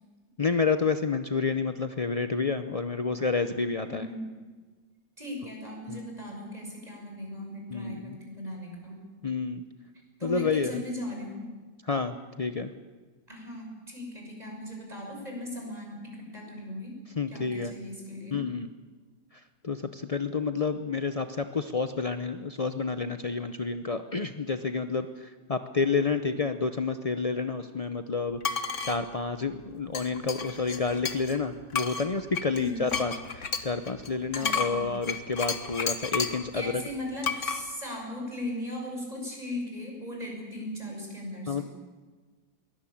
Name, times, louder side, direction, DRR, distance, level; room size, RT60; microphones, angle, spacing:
voice 1, 0.4-4.1 5.9-6.0 7.7-8.2 9.2-9.6 10.2-10.8 11.9-12.7 17.2-17.7 18.3-18.7 19.6-36.8 41.5-41.6, left 4 dB, 60° left, 9 dB, 0.3 m, -29 dB
voice 2, 3.8-4.3 5.2-9.0 10.2-11.4 13.3-16.9 17.3-18.4 32.5-32.9 34.3-34.8 36.5-41.6, left 1 dB, 20° right, 0 dB, 6.6 m, -38 dB
sound 1, 28.4-29.0 29.9-31.4 31.7-36.5 37.2-37.6, left 5 dB, 45° left, 1.7 m, -32 dB
22.5 x 19.0 x 8.7 m, 1.4 s
omnidirectional pair, 1.9 m